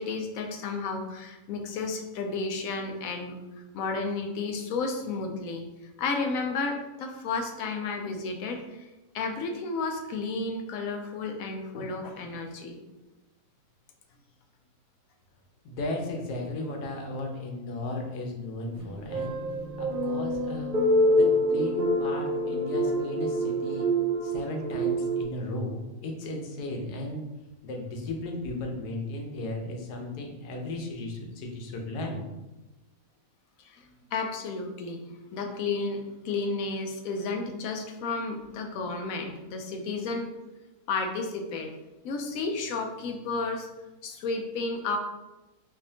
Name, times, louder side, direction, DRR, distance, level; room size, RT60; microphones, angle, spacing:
voice 1, 0.0-3.4 3.7-5.6 6.0-8.9 9.1-12.8 33.6-33.8 34.1-35.0 35.3-40.3 40.9-41.7 42.0-43.7 44.0-45.0, left 3 dB, 70° left, 3 dB, 0.9 m, -32 dB
voice 2, 15.6-19.4 19.8-20.7 21.1-23.8 24.2-27.2 27.6-32.2, left 2 dB, 90° left, 1 dB, 1.3 m, -35 dB
sound 1, 18.8-25.2, equal, 60° right, 0.5 m, -26 dB
4.1 x 2.8 x 2.7 m, 1.0 s
omnidirectional pair, 1.6 m